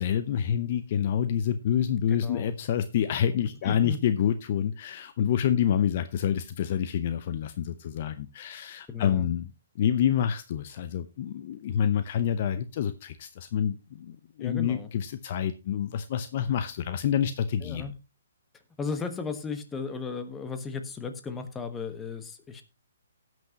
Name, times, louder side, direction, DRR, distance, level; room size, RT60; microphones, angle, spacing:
voice 1, 0.0-9.5 9.8-17.9, left 9 dB, 45° left, 11 dB, 0.6 m, -27 dB
voice 2, 2.1-2.5 3.6-4.0 8.9-9.3 14.4-14.9 17.6-17.9 18.8-22.6, left 5 dB, 10° left, 8 dB, 1.2 m, -35 dB
18.0 x 6.1 x 2.9 m, 0.28 s
hypercardioid pair, 135°, 0 cm